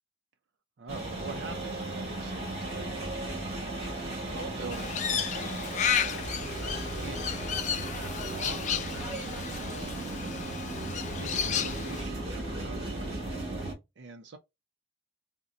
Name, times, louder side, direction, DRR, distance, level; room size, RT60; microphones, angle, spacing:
voice 1, 0.8-3.2 3.9-6.3 6.6-13.1 14.0-14.4, right 4 dB, 65° right, 0.4 m, -46 dB
sound 1, 0.9-13.7, right 2 dB, 35° right, 1.4 m, -36 dB
Crow, 4.7-12.0, left 8 dB, 40° left, 0.3 m, -33 dB
sound 2, 5.6-7.1 7.5-8.8 9.3-10.5, equal, 5° right, 1.3 m, -52 dB
3.8 x 2.1 x 2.5 m
head